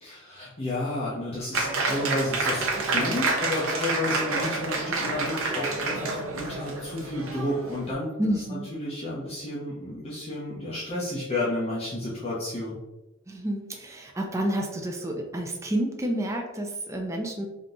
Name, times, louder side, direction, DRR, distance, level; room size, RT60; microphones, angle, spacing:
voice 1, 0.0-12.8, left 1 dB, 30° left, -8 dB, 0.8 m, -31 dB
Applause, 1.5-7.9, right 3 dB, 75° right, 0.7 m, -28 dB
voice 2, 8.2-8.7 13.3-17.5, right 1 dB, 15° right, 1 dB, 0.5 m, -29 dB
3.6 x 2.8 x 3.7 m, 1.0 s
head